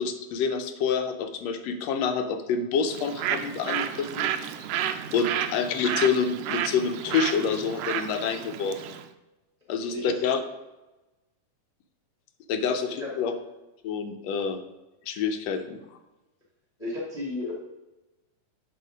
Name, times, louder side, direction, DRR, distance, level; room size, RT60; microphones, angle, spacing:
voice 1, 0.0-4.3 5.1-8.8 9.7-10.4 12.5-13.3 13.8-14.6 15.1-15.8, left 6 dB, 75° left, 7 dB, 1.7 m, -27 dB
Bird, 2.9-9.1, right 10 dB, 90° right, 1.4 m, -31 dB
voice 2, 9.9-10.3 12.9-13.1 16.8-17.5, left 2 dB, 20° left, -6 dB, 1.2 m, -33 dB
10.5 x 3.6 x 5.0 m, 1.0 s
omnidirectional pair, 3.4 m